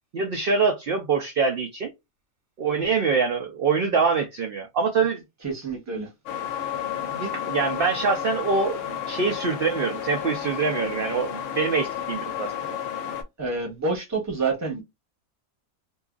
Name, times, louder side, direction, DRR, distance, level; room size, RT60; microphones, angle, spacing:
voice 1, 0.1-1.9 2.6-5.2 7.1-12.5, right 5 dB, 60° right, 0.6 m, -24 dB
voice 2, 5.4-6.1 13.4-14.8, right 3 dB, 15° right, 0.8 m, -28 dB
sound 1, 6.3-13.2, left 9 dB, 70° left, 0.8 m, -32 dB
2.7 x 2.4 x 2.3 m
omnidirectional pair, 1.5 m